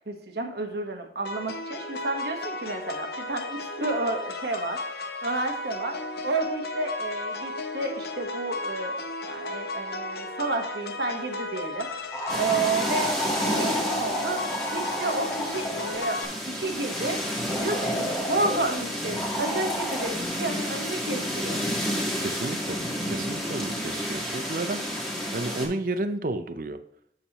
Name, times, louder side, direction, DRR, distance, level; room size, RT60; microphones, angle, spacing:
voice 1, 0.1-4.8 5.2-6.0 6.2-11.9 12.3-13.1 13.5-14.5 14.7-17.2 17.6-21.6, right 2 dB, 65° right, 4 dB, 1.3 m, -31 dB
sound 1, 1.2-16.2, left 2 dB, 60° left, 0.7 m, -35 dB
sound 2, 12.1-16.1 17.5-18.6 19.2-20.1, equal, 20° left, 1.1 m, -32 dB
sound 3, 12.3-25.7, equal, ahead, 1.6 m, -31 dB
voice 2, 22.2-22.8 23.1-24.8 25.3-26.8, right 2 dB, 50° right, 10 dB, 0.6 m, -31 dB
7.3 x 6.7 x 3.0 m, 0.69 s
head